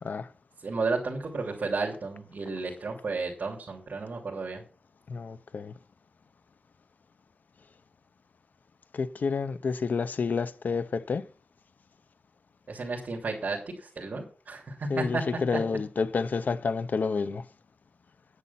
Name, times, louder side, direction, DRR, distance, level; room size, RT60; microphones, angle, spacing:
voice 1, 0.0-0.3 5.1-5.7 8.9-11.2 14.9-17.4, left 5 dB, 75° left, 0.8 m, -29 dB
voice 2, 0.6-4.6 12.7-15.2, right 3 dB, 70° right, 3.0 m, -32 dB
9.8 x 9.6 x 5.8 m
wide cardioid pair, 110°, 3 cm